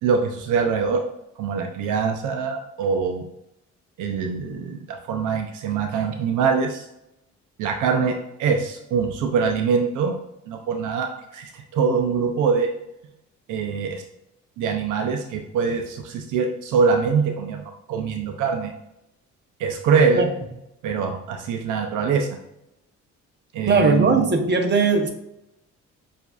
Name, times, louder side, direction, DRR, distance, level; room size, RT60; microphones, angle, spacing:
voice 1, 0.0-1.0 1.4-3.2 4.0-6.8 7.6-10.2 10.5-12.7 13.5-14.0 14.6-18.7 19.6-20.3 20.8-22.3 23.5-24.2, right 5 dB, 85° right, 4 dB, 0.6 m, -23 dB
voice 2, 23.7-25.1, right 4 dB, 35° right, 4 dB, 0.8 m, -19 dB
6.8 x 2.6 x 2.4 m, 0.81 s
cardioid pair, 90°, 30 cm